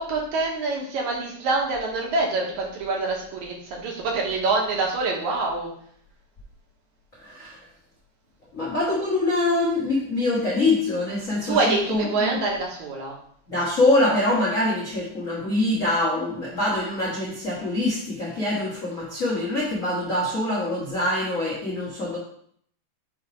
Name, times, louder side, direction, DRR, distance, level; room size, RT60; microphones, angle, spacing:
voice 1, 0.0-5.7 11.5-13.1, right 3 dB, 70° right, -1 dB, 2.3 m, -25 dB
voice 2, 7.2-7.6 8.5-12.4 13.5-22.2, left 2 dB, 90° left, -6 dB, 0.7 m, -24 dB
6.1 x 3.4 x 5.0 m, 0.65 s
omnidirectional pair, 3.9 m